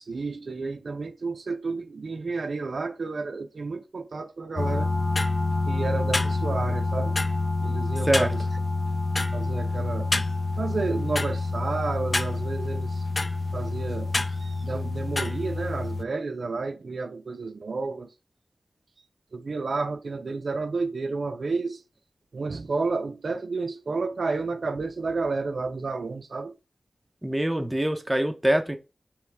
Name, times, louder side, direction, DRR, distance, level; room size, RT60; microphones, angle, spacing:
voice 1, 0.0-4.9 5.7-7.2 7.6-8.4 9.3-10.1 10.6-13.0 13.5-18.1 19.3-21.8 22.3-26.6, right 3 dB, 75° right, 0.4 m, -31 dB
sound 1, 4.6-16.0, left 3 dB, 40° left, 0.3 m, -27 dB
voice 2, 27.2-28.8, right 1 dB, 15° right, 0.5 m, -24 dB
4.7 x 3.0 x 3.3 m
wide cardioid pair, 95°, 0 cm